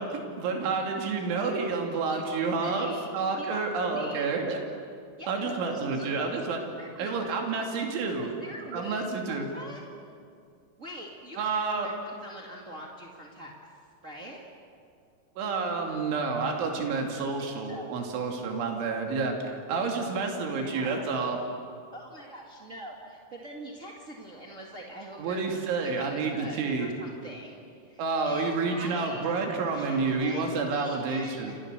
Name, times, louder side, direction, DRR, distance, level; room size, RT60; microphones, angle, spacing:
voice 1, 0.0-4.6 5.3-6.6 7.0-8.3 8.7-9.5 11.4-11.9 15.4-21.4 25.2-26.9 28.0-31.5, right 4 dB, 90° right, 2 dB, 4.9 m, -29 dB
voice 2, 2.1-4.4 5.2-6.1 6.8-7.2 7.5-7.6 8.2-9.0 9.3-9.8 10.8-13.5 14.0-14.4 17.1-17.8 20.1-20.2 20.5-21.2 21.9-29.3 29.7-31.5, right 1 dB, 50° right, -1 dB, 0.9 m, -44 dB
28.0 x 27.5 x 6.8 m, 2.4 s
omnidirectional pair, 5.3 m